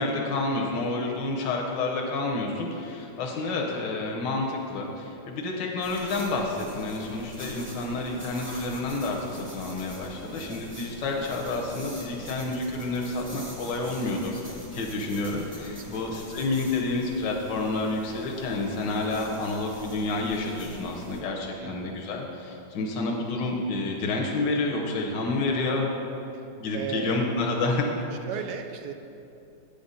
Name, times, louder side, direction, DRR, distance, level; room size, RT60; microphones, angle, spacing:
voice 1, 0.0-14.4 14.7-25.9 26.6-27.9, left 2 dB, 80° left, 0 dB, 1.6 m, -29 dB
voice 2, 0.7-1.2 10.3-10.6 15.7-16.2 21.6-22.0 26.3-26.5 26.7-27.3 28.3-28.9, right 6 dB, 75° right, 6 dB, 1.1 m, -37 dB
sound 1, 5.8-21.2, equal, 10° right, 0.7 m, -44 dB
8.7 x 5.2 x 5.5 m, 2.8 s
omnidirectional pair, 1.9 m